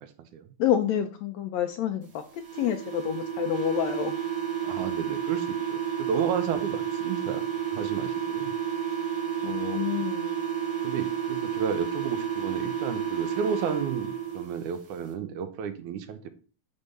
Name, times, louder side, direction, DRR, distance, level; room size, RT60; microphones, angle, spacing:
voice 1, 0.0-0.5 4.6-8.5 9.4-9.8 10.8-16.3, right 7 dB, 75° right, 8 dB, 2.3 m, -33 dB
voice 2, 0.6-4.2 9.4-10.4, left 10 dB, 75° left, 7 dB, 1.7 m, -28 dB
sound 1, 2.4-14.4, right 8 dB, 45° right, 2.3 m, -31 dB
9.9 x 3.6 x 6.7 m, 0.37 s
omnidirectional pair, 3.7 m